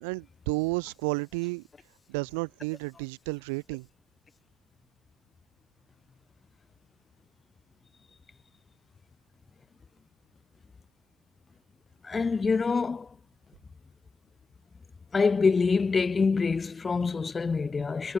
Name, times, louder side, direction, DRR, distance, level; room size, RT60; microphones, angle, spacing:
voice 1, 0.0-1.7 2.1-3.9, right 30 dB, 85° right, 0.8 m, -32 dB
voice 2, 12.0-13.1 15.1-18.2, left 4 dB, 20° left, 0.4 m, -25 dB
cardioid pair, 140°, 0 cm